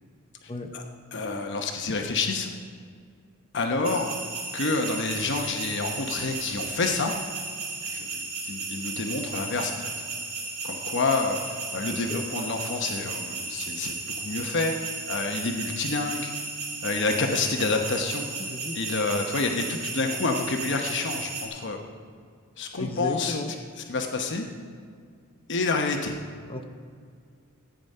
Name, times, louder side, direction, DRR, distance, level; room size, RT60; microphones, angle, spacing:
voice 1, 1.1-2.5 3.5-4.2 4.5-7.1 7.8-10.1 10.6-16.3 16.8-18.3 18.7-21.8 22.6-24.5 25.5-26.2, left 3 dB, 55° left, 3 dB, 1.0 m, -28 dB
sound 1, 3.8-21.5, right 4 dB, 65° right, 2.7 m, -34 dB
voice 2, 18.4-18.7 22.8-23.5 26.5-26.6, left 2 dB, 25° left, 4 dB, 0.7 m, -33 dB
14.0 x 9.3 x 5.5 m, 2.1 s
head